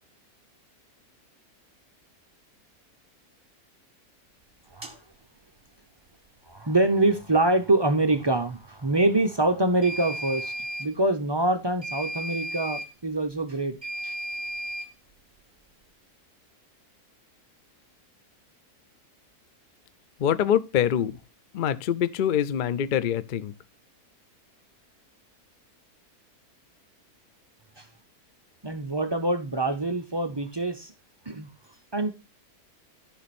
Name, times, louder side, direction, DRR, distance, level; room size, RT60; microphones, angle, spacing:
sound 1, 4.8-5.0 9.8-10.9 11.8-12.9 13.8-14.9, right 1 dB, 20° right, 1.2 m, -34 dB
voice 1, 6.5-10.5 10.8-13.8 14.0-14.1 27.8-27.9 28.6-30.9 31.3-31.5 31.9-32.1, right 2 dB, 40° right, 0.3 m, -25 dB
voice 2, 20.2-21.2 21.5-23.5, left 9 dB, 75° left, 0.4 m, -24 dB
13.5 x 5.0 x 4.2 m
omnidirectional pair, 1.7 m